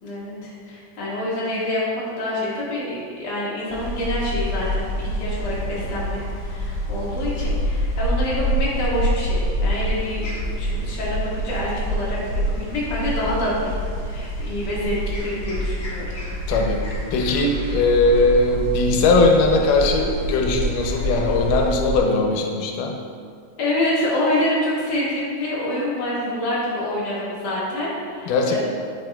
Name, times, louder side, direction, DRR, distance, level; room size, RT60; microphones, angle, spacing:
voice 1, 0.0-10.3 10.6-12.2 12.5-16.1 23.6-28.6, left 1 dB, 40° left, -8 dB, 1.7 m, -26 dB
sound 1, 3.7-22.0, equal, 60° left, 1.7 m, -26 dB
voice 2, 16.5-16.8 17.1-22.9 28.3-28.6, left 2 dB, 85° left, 1 dB, 2.2 m, -19 dB
8.8 x 5.2 x 2.2 m, 2.3 s
omnidirectional pair, 3.6 m